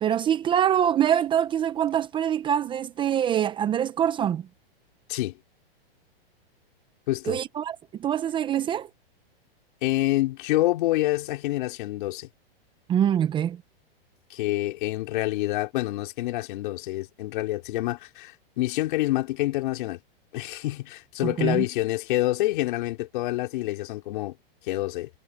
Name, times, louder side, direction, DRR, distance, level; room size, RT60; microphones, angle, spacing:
voice 1, 0.0-4.4 7.3-8.9 12.9-13.6 21.2-21.6, right 9 dB, 15° right, 0.7 m, -24 dB
voice 2, 7.1-7.4 9.8-12.3 14.3-20.0 20.3-24.4 24.7-25.1, left 17 dB, 55° left, 4.0 m, -27 dB
hypercardioid pair, 145°, 30 cm